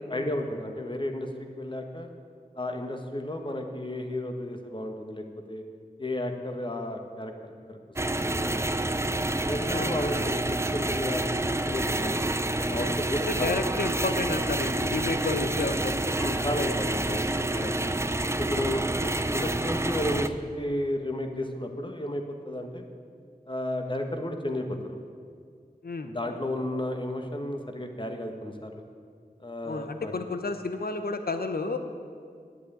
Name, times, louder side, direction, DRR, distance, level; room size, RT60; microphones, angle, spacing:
voice 1, 0.1-2.1 2.5-5.6 6.0-7.8 8.2-8.9 9.4-13.6 16.2-18.0 18.4-22.9 23.5-25.0 26.0-28.8 29.4-30.1, left 1 dB, 30° left, 4 dB, 1.4 m, -33 dB
sound 1, 8.0-20.3, right 2 dB, 15° right, 0.5 m, -28 dB
voice 2, 13.3-16.1 25.8-26.1 29.6-31.8, left 3 dB, 75° left, 8 dB, 0.9 m, -31 dB
10.5 x 8.3 x 8.5 m, 2.2 s
wide cardioid pair, 50°, 16 cm